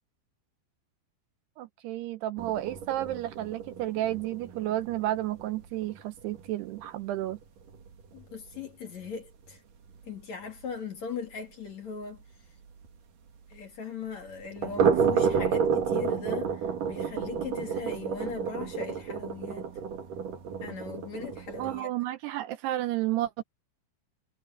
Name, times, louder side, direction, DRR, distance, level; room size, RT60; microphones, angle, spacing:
voice 1, 1.6-7.4 21.6-23.4, right 14 dB, 80° right, 2.6 m, -32 dB
sound 1, 2.4-8.3 8.5-8.6 9.1-9.2 9.5-9.6 9.9-10.0 12.8-12.9 14.4-21.8, right 6 dB, 50° right, 3.8 m, -31 dB
voice 2, 8.1-9.6 10.1-12.2 13.5-19.7 20.6-21.9, left 5 dB, 45° left, 3.3 m, -39 dB
omnidirectional pair, 5.2 m